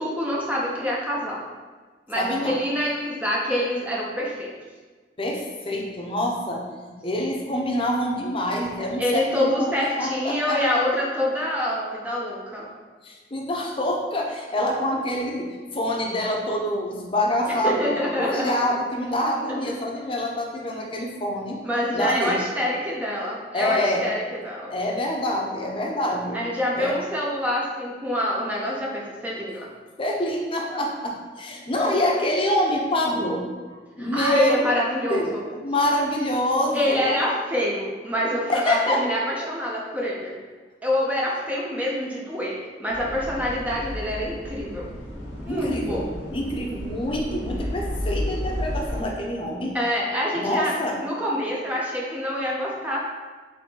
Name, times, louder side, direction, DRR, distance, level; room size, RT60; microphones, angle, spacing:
voice 1, 0.0-1.4 2.1-4.5 9.0-12.7 17.5-18.5 19.6-19.7 21.6-24.7 26.3-29.7 34.0-35.4 36.7-40.4 40.8-44.9 45.5-46.0 49.7-50.7 51.0-53.0, left 1 dB, 10° right, -4 dB, 0.5 m, -26 dB
voice 2, 2.2-2.6 5.2-6.6 6.9-9.7 10.0-10.8 13.0-21.6 21.9-22.4 23.5-24.1 24.7-26.4 26.7-26.9 30.0-33.4 34.0-34.6 35.1-35.3 35.6-37.2 38.5-39.0 45.5-46.0 46.3-49.7 50.3-51.0, left 1 dB, 30° left, -1 dB, 0.7 m, -26 dB
sound 1, 42.9-49.0, left 1 dB, 75° left, 1.0 m, -32 dB
4.0 x 3.3 x 3.7 m, 1.4 s
head